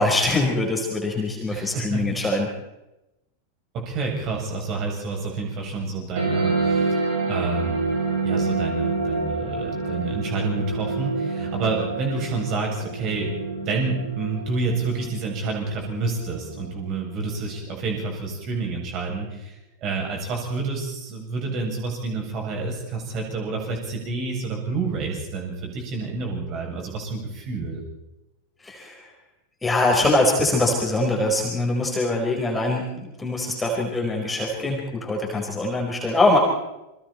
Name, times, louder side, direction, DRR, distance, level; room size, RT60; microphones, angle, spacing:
voice 1, 0.0-2.5 28.6-29.0 29.6-36.4, left 2 dB, 10° left, -1 dB, 4.6 m, -23 dB
voice 2, 1.5-2.1 3.7-7.0 7.3-7.9 8.2-27.8, right 3 dB, 35° right, 0 dB, 7.6 m, -29 dB
sound 1, 6.2-17.1, right 3 dB, 60° right, 6.8 m, -28 dB
29.0 x 24.0 x 4.4 m, 0.94 s
figure-of-eight pair, 90°, 0 cm